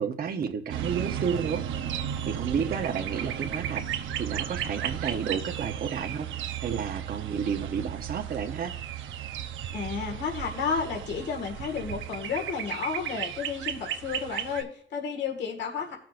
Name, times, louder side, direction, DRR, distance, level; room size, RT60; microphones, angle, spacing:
voice 1, 0.0-1.6 2.3-6.3 6.6-8.7, right 6 dB, 50° right, 5 dB, 0.9 m, -31 dB
sound 1, 0.7-14.6, right 9 dB, 75° right, 0.8 m, -34 dB
voice 2, 9.7-16.0, left 5 dB, 65° left, 1 dB, 1.8 m, -32 dB
16.5 x 6.0 x 2.5 m, 0.65 s
cardioid pair, 90°, 20 cm